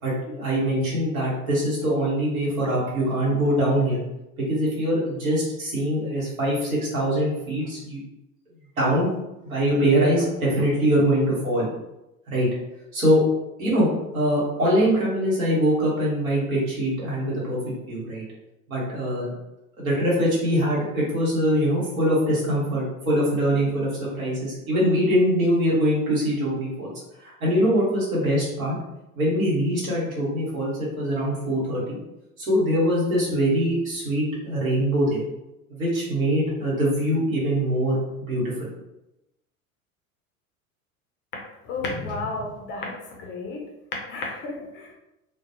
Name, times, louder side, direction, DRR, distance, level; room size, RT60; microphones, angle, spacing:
voice 1, 0.0-4.0 4.4-8.0 8.8-9.1 9.4-11.7 12.3-12.5 12.9-13.2 13.6-13.9 14.1-17.6 17.9-18.2 18.7-19.3 19.8-26.9 27.2-28.7 29.1-32.0 32.4-35.2 35.7-38.7, equal, 75° right, -6 dB, 1.2 m, -23 dB
voice 2, 41.6-43.6 44.1-44.9, left 3 dB, 30° left, 0 dB, 0.5 m, -32 dB
2.4 x 2.0 x 2.7 m, 0.92 s
figure-of-eight pair, 75°, 42 cm